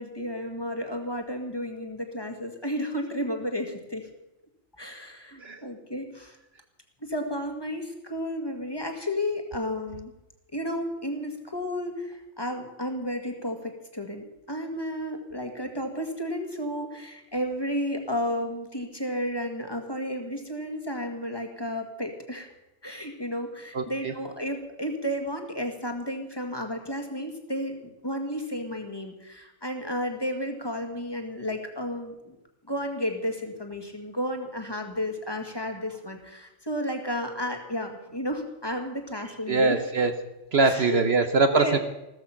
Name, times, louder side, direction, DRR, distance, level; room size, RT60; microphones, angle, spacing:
voice 1, 0.0-4.0 4.8-6.4 7.0-10.1 10.5-22.5 22.8-27.8 28.0-32.4 32.7-39.8 40.6-41.0 41.5-41.8, equal, 20° left, 4 dB, 1.9 m, -32 dB
voice 2, 23.7-24.1 39.5-40.2 40.5-41.8, right 4 dB, 55° right, 8 dB, 1.1 m, -23 dB
15.0 x 13.5 x 5.8 m, 0.94 s
omnidirectional pair, 1.3 m